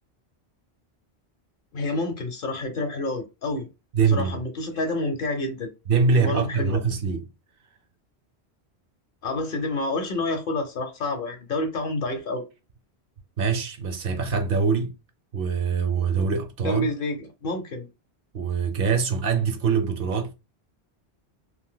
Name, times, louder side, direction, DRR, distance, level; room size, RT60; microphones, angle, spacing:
voice 1, 1.7-3.7 4.1-5.7 6.1-6.8 9.2-12.4 16.6-17.9, left 2 dB, 60° left, 0.8 m, -28 dB
voice 2, 3.9-4.4 5.9-7.3 13.4-14.9 15.3-16.9 18.3-20.3, right 5 dB, 65° right, 0.7 m, -23 dB
2.5 x 2.2 x 3.7 m
omnidirectional pair, 1.1 m